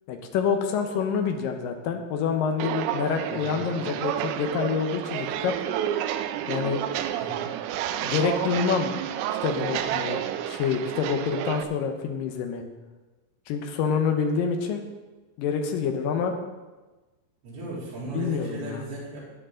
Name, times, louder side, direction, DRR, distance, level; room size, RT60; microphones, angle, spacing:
voice 1, 0.1-5.5 6.5-6.8 7.9-8.9 9.4-10.2 10.5-12.6 13.5-14.8 15.4-16.3 18.1-18.8, left 6 dB, 75° left, 4 dB, 2.2 m, -27 dB
Walk footsteps, 2.6-11.6, right 11 dB, 90° right, 2.9 m, -30 dB
voice 2, 3.3-3.6 7.2-7.5 17.4-19.3, right 2 dB, 65° right, -8 dB, 5.9 m, -37 dB
14.0 x 9.4 x 3.8 m, 1.2 s
omnidirectional pair, 5.0 m